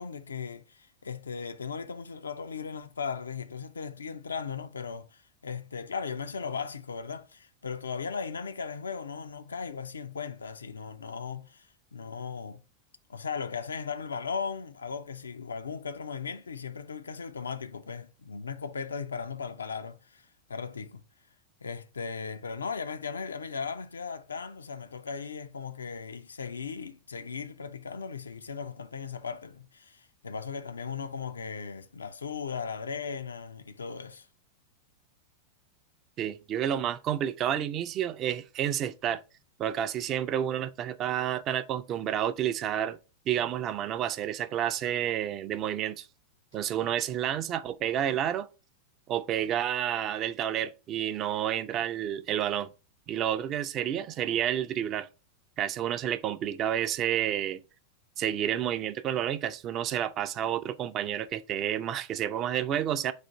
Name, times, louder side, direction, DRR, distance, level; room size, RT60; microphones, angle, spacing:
voice 1, 0.0-12.6 13.1-21.0 21.6-34.3, left 5 dB, 75° left, 0.4 m, -37 dB
voice 2, 36.2-39.2 39.6-43.0 43.3-46.1 46.5-48.5 49.1-52.7 53.1-55.1 55.6-57.6 58.2-63.1, right 10 dB, 35° right, 0.4 m, -30 dB
4.1 x 2.4 x 4.5 m
figure-of-eight pair, 90°, 0 cm